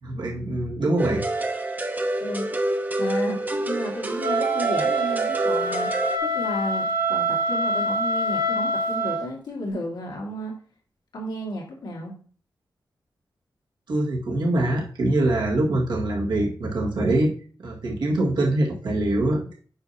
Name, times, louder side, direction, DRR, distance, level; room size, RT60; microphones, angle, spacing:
voice 1, 0.0-1.2 13.9-17.3 17.6-19.6, right 1 dB, 90° right, -3 dB, 1.9 m, -24 dB
sound 1, 1.0-6.2, right 1 dB, 20° right, 0.7 m, -27 dB
voice 2, 3.0-10.5 11.1-12.2, left 1 dB, 80° left, -2 dB, 2.2 m, -33 dB
Wind instrument woodwind instrument, 4.2-9.2, right 2 dB, 70° right, 1.4 m, -25 dB
8.7 x 5.5 x 2.9 m, 0.43 s
wide cardioid pair, 130°, 8 cm